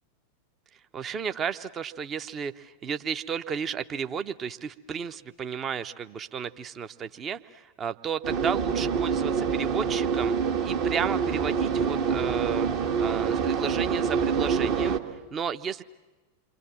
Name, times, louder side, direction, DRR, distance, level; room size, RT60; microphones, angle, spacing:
voice 1, 0.9-15.8, right 7 dB, 25° right, 10 dB, 0.9 m, -33 dB
sound 1, 8.2-15.0, right 6 dB, 45° right, 1.7 m, -26 dB
28.5 x 24.5 x 7.4 m, 1.2 s
figure-of-eight pair, 90°, 0 cm